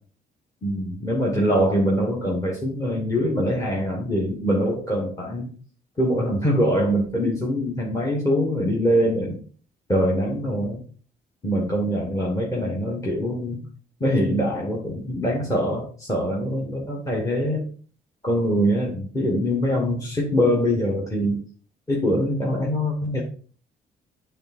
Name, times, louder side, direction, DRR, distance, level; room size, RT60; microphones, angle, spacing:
voice 1, 0.6-5.5 6.0-9.4 9.9-10.8 11.4-13.7 14.0-17.7 18.2-21.4 21.9-23.2, equal, 20° left, -1 dB, 1.4 m, -23 dB
8.8 x 3.4 x 4.3 m, 0.42 s
cardioid pair, 135°, 16 cm